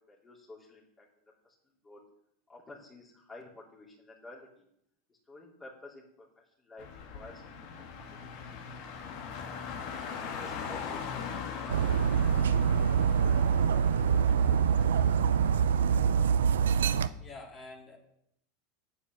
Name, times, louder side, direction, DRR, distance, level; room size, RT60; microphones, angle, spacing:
voice 1, 0.1-1.1 1.4-1.5 1.8-2.0 2.5-4.6 5.1-6.3 6.6-6.9 7.1-8.3 9.0-9.2 10.1-11.0, left 2 dB, 20° left, -4 dB, 3.4 m, -51 dB
Car, 6.8-16.3, left 6 dB, 60° left, 1.8 m, -41 dB
Dog, 11.7-17.1, right 7 dB, 75° right, 0.5 m, -25 dB
voice 2, 17.2-18.0, left 3 dB, 35° left, -2 dB, 3.7 m, -47 dB
9.6 x 8.7 x 6.3 m, 0.76 s
hypercardioid pair, 90°, 0 cm